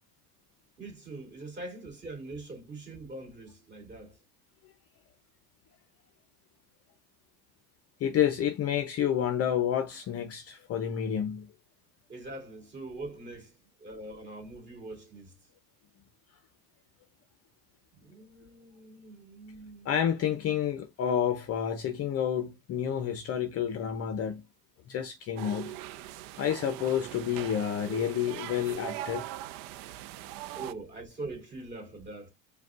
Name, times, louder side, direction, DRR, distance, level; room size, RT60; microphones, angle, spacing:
voice 1, 0.8-4.2 12.1-15.4 17.9-19.9 30.5-32.3, right 2 dB, 25° right, 2.4 m, -43 dB
voice 2, 8.0-11.5 19.9-24.4 24.9-25.8 26.4-29.2, left 9 dB, 35° left, 0.5 m, -29 dB
sound 1, 25.4-30.7, right 14 dB, 80° right, 0.5 m, -40 dB
5.1 x 2.3 x 3.6 m
supercardioid pair, 125°, 45 cm